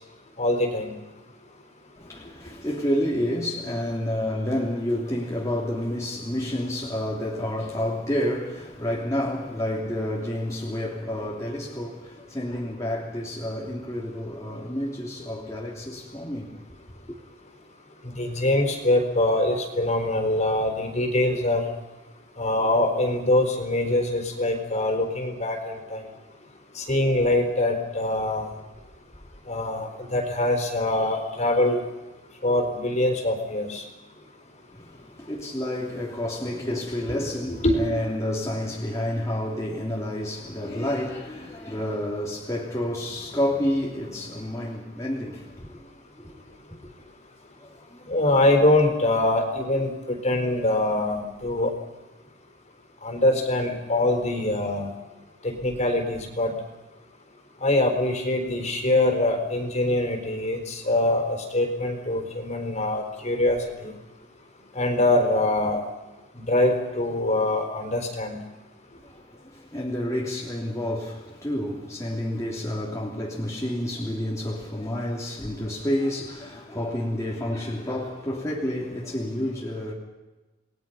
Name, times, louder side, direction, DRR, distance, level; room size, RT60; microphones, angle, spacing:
voice 1, 0.4-0.9 18.0-21.7 22.4-26.0 26.7-28.5 29.5-31.8 32.4-33.8 37.5-37.8 48.1-51.7 53.0-54.9 55.4-56.5 57.6-63.9 64.7-65.8 66.4-68.4, left 1 dB, 35° left, 4.3 m, -24 dB
voice 2, 2.0-16.5 34.7-45.9 46.2-46.4 47.6-48.1 69.0-79.9, left 1 dB, 15° left, 3.1 m, -29 dB
29.0 x 21.0 x 5.7 m
head